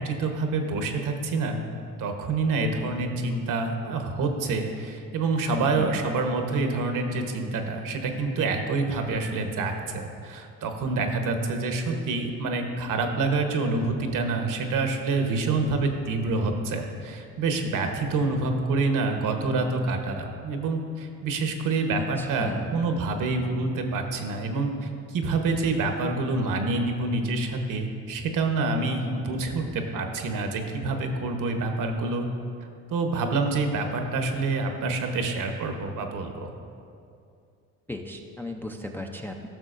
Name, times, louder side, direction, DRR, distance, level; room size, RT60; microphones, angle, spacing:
voice 1, 0.0-1.6 2.0-32.2 32.9-36.5, right 3 dB, 60° right, 4 dB, 1.1 m, -27 dB
voice 2, 22.0-22.7 37.9-39.5, left 1 dB, 5° left, 2 dB, 0.5 m, -36 dB
13.5 x 6.1 x 2.5 m, 2.5 s
supercardioid pair, 80°, 36 cm